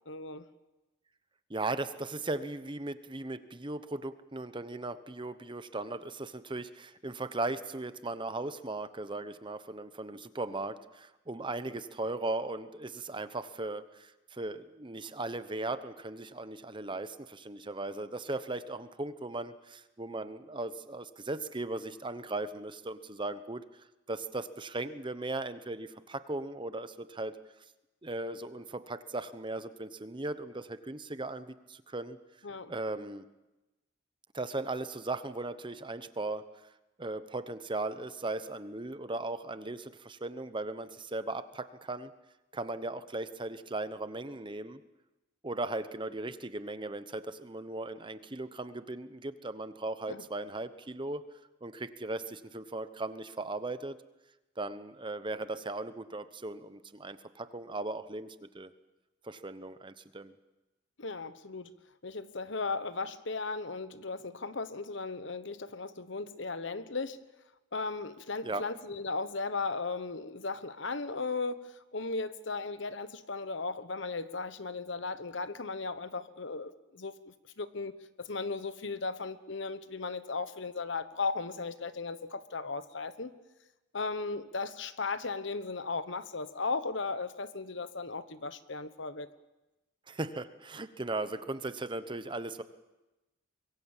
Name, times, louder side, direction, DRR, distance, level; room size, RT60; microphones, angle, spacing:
voice 1, 0.1-0.4 32.4-32.7 50.1-50.2 61.0-61.7 62.0-67.2 67.7-77.9 78.2-83.3 83.9-89.3, left 3 dB, 65° left, 13 dB, 1.2 m, -36 dB
voice 2, 1.5-23.6 24.1-27.3 28.0-32.2 32.7-33.2 34.3-36.4 37.0-42.1 42.5-44.8 45.4-51.2 51.6-54.0 54.6-58.7 59.2-60.3 68.4-68.6 90.1-92.6, right 2 dB, 25° right, 12 dB, 1.0 m, -37 dB
24.5 x 22.5 x 7.3 m, 1.0 s
head